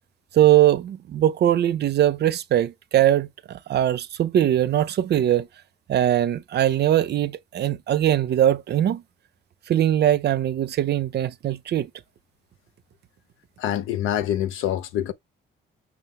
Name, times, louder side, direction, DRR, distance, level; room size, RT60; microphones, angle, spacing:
voice 1, 0.3-5.5 5.9-9.0 9.7-11.9, right 12 dB, 55° right, 0.5 m, -21 dB
voice 2, 13.6-15.1, left 11 dB, 85° left, 0.6 m, -25 dB
6.1 x 2.1 x 3.4 m
cardioid pair, 90°, 20 cm